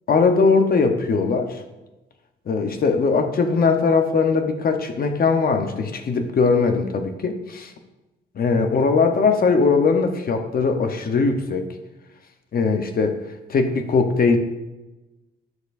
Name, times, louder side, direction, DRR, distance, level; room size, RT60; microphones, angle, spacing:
voice 1, 0.1-1.6 2.5-7.7 8.3-11.7 12.5-13.2 13.5-14.4, left 4 dB, 50° left, 5 dB, 1.0 m, -20 dB
11.0 x 6.2 x 2.7 m, 1.1 s
cardioid pair, 90°, 20 cm